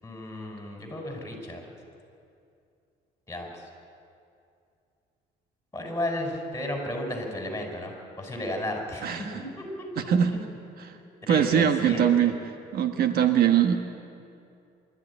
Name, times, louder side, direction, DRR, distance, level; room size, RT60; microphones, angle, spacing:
voice 1, 0.0-1.6 3.3-3.6 5.7-9.3 9.6-9.9 11.2-12.3, left 1 dB, 15° left, 2 dB, 5.8 m, -33 dB
voice 2, 9.0-9.4 10.0-10.3 10.8-11.0 11.3-12.3 12.7-13.8, right 9 dB, 65° right, 7 dB, 1.4 m, -22 dB
24.0 x 13.5 x 10.0 m, 2.5 s
cardioid pair, 110°, 17 cm